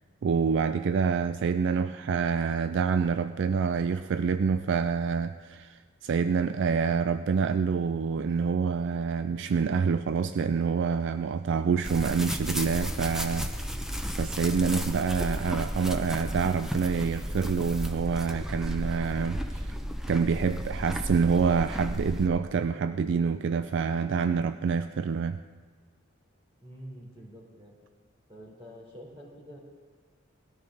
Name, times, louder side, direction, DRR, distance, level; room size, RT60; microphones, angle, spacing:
voice 1, 0.2-13.8 14.2-19.8 20.1-25.4, right 5 dB, 60° right, 11 dB, 0.3 m, -27 dB
sound 1, 11.8-22.3, equal, ahead, 0.7 m, -33 dB
voice 2, 26.6-27.8 28.3-29.6, equal, 25° right, -2 dB, 3.3 m, -47 dB
18.0 x 13.0 x 3.9 m, 1.5 s
head